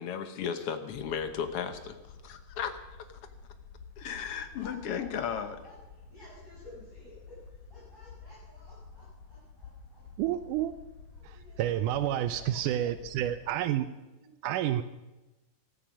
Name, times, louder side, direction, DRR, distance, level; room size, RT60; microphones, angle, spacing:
voice 1, 0.0-2.8 4.0-5.6, left 7 dB, 60° left, 9 dB, 1.6 m, -35 dB
sound 1, 0.9-13.5, left 5 dB, 90° left, 3.3 m, -51 dB
voice 2, 4.5-10.4 11.1-13.8 14.2-14.6, left 1 dB, 5° right, -10 dB, 7.4 m, -54 dB
voice 3, 10.2-10.7 11.2-13.9 14.4-14.8, right 12 dB, 80° right, 12 dB, 2.1 m, -29 dB
16.5 x 13.5 x 6.3 m, 1.1 s
omnidirectional pair, 3.7 m